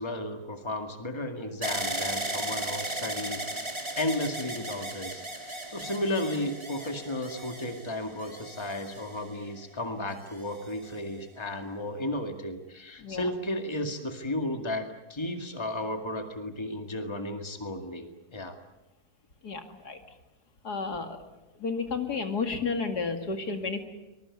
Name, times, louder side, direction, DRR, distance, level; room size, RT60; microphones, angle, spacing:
voice 1, 0.0-18.6, left 1 dB, 15° left, 6 dB, 2.1 m, -34 dB
sound 1, 1.6-9.6 10.3-11.0, right 1 dB, 15° right, 2.7 m, -36 dB
voice 2, 19.4-20.0 20.6-21.2 21.6-23.9, left 4 dB, 75° left, 6 dB, 2.9 m, -32 dB
24.5 x 21.5 x 9.7 m, 1.0 s
omnidirectional pair, 1.7 m